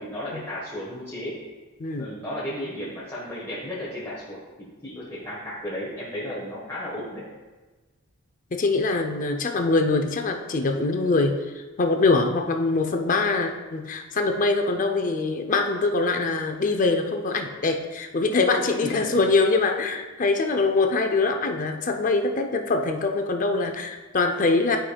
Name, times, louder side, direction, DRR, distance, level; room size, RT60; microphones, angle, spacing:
voice 1, 0.0-1.3 2.0-7.3 18.8-19.1, left 1 dB, 15° left, -8 dB, 1.2 m, -34 dB
voice 2, 8.5-24.8, left 3 dB, 35° left, 5 dB, 0.5 m, -23 dB
11.5 x 5.0 x 2.3 m, 1.3 s
head